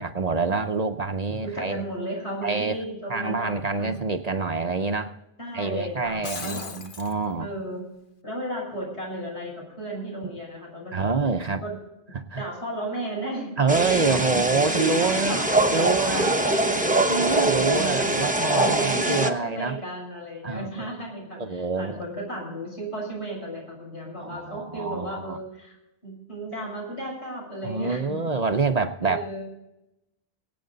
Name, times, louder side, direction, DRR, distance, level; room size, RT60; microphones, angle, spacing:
voice 1, 0.0-1.8 2.4-2.8 3.1-5.2 5.5-7.5 10.9-11.6 12.1-12.4 13.6-15.4 15.7-16.3 17.1-19.8 20.4-20.9 21.4-22.0 24.2-25.4 27.6-29.3, right 4 dB, 45° right, 8 dB, 0.7 m, -26 dB
voice 2, 1.4-4.0 5.4-6.7 7.4-7.8 8.2-11.8 12.3-13.5 13.8-14.3 14.7-18.2 18.5-25.8 26.0-28.3 29.0-29.4, right 1 dB, 80° left, -2 dB, 6.7 m, -34 dB
Shatter, 6.0-7.1, left 4 dB, 55° left, 1.2 m, -36 dB
sound 1, 13.7-19.3, right 2 dB, 10° right, 0.8 m, -23 dB
23.5 x 8.7 x 3.9 m, 0.90 s
omnidirectional pair, 1.1 m